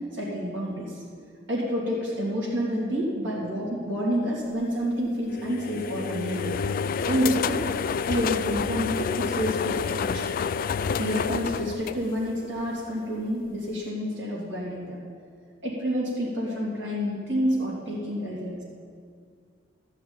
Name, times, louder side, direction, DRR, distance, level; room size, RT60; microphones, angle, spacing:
voice 1, 0.1-1.0 1.5-6.6 7.0-7.6 8.0-10.3 10.9-15.0 15.6-18.6, equal, 70° right, -7 dB, 2.9 m, -28 dB
sound 1, 5.3-12.6, left 6 dB, 50° left, 0.3 m, -29 dB
13.0 x 5.7 x 8.9 m, 2.1 s
head